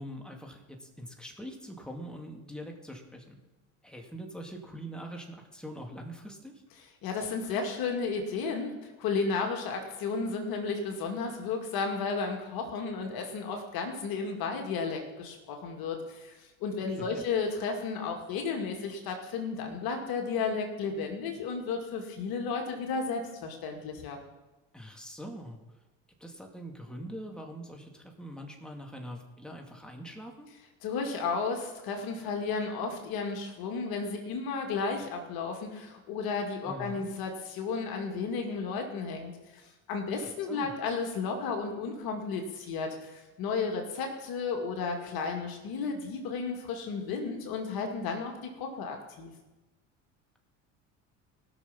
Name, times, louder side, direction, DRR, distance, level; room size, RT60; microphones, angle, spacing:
voice 1, 0.0-3.4 3.8-6.5 16.9-17.2 24.7-25.6 26.2-30.5 36.6-37.0 40.2-40.7, equal, ahead, 2 dB, 2.5 m, -43 dB
voice 2, 7.0-24.2 30.8-49.3, left 4 dB, 60° left, 3 dB, 2.2 m, -33 dB
18.5 x 6.4 x 5.8 m, 1.1 s
hypercardioid pair, 65°, 40 cm